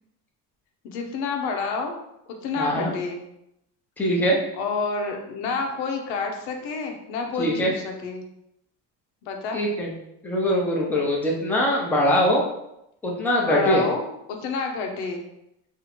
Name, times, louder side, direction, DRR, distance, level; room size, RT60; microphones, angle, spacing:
voice 1, 0.8-1.9 2.4-3.2 4.5-8.3 9.2-9.6 13.5-15.2, left 4 dB, 90° left, 3 dB, 0.9 m, -29 dB
voice 2, 2.6-2.9 4.0-4.4 7.4-7.7 9.5-9.9 10.2-12.4 13.0-13.8, equal, 5° left, -3 dB, 0.6 m, -22 dB
2.9 x 2.7 x 4.2 m, 0.83 s
cardioid pair, 130°, 47 cm